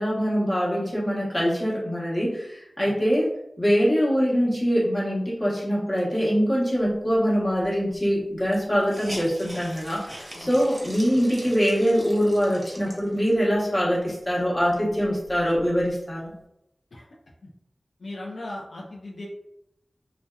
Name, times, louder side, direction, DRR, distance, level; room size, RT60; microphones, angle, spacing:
voice 1, 0.0-3.3 3.6-16.3, equal, 30° left, -5 dB, 1.0 m, -23 dB
Hiss, 7.6-7.7 7.9-8.0 8.5-13.5 14.1-14.2 14.5-15.9, right 1 dB, 35° right, 0.8 m, -42 dB
voice 2, 18.0-19.3, left 1 dB, 85° left, -3 dB, 0.3 m, -37 dB
2.6 x 2.0 x 2.3 m, 0.83 s
wide cardioid pair, 45°, 0 cm